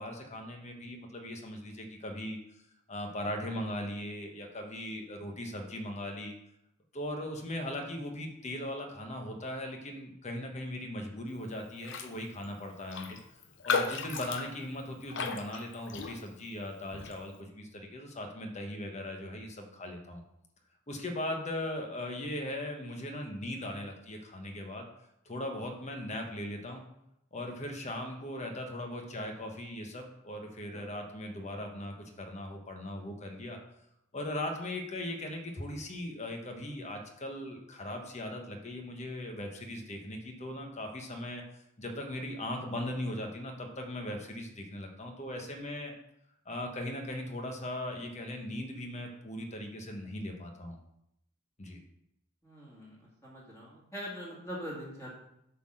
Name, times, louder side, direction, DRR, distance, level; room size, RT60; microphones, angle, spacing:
voice 1, 0.0-2.4 2.9-6.3 6.9-13.2 13.6-20.2 20.9-24.8 25.2-26.9 27.3-33.6 34.1-41.4 41.8-45.9 46.4-50.8 51.6-51.8, left 1 dB, 35° left, 3 dB, 1.1 m, -39 dB
Raindrop, 11.8-12.2 12.4-12.5 12.9-16.5 16.9-17.2, left 5 dB, 60° left, 0.7 m, -35 dB
voice 2, 52.4-55.1, equal, 15° left, -6 dB, 2.1 m, -43 dB
8.3 x 3.9 x 6.2 m, 0.80 s
head